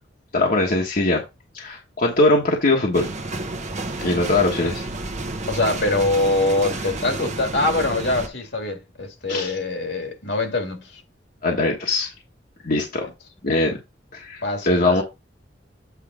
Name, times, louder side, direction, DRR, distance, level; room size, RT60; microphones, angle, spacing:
voice 1, 0.3-1.2 1.5-3.1 4.0-4.8 9.3-9.5 11.4-12.1 12.6-13.1 13.4-13.8 14.1-15.0, left 2 dB, 55° left, 1.4 m, -21 dB
sound 1, 2.9-8.3, right 2 dB, 40° right, 1.0 m, -30 dB
voice 2, 5.5-11.0 13.0-13.1 14.4-15.0, left 2 dB, 70° left, 2.0 m, -24 dB
8.5 x 3.3 x 4.9 m
head